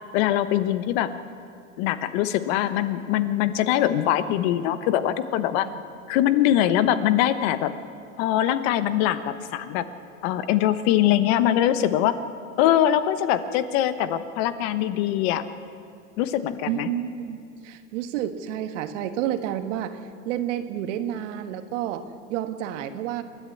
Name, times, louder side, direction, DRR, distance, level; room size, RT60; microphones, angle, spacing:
voice 1, 0.1-1.1 1.8-5.7 6.1-7.7 8.2-9.9 10.2-12.2 12.6-15.4 16.2-16.9, left 12 dB, 50° left, 12 dB, 1.1 m, -22 dB
voice 2, 16.6-20.0 20.2-23.2, right 11 dB, 60° right, 9 dB, 1.5 m, -30 dB
28.0 x 11.0 x 8.5 m, 2.4 s
supercardioid pair, 130°, 41 cm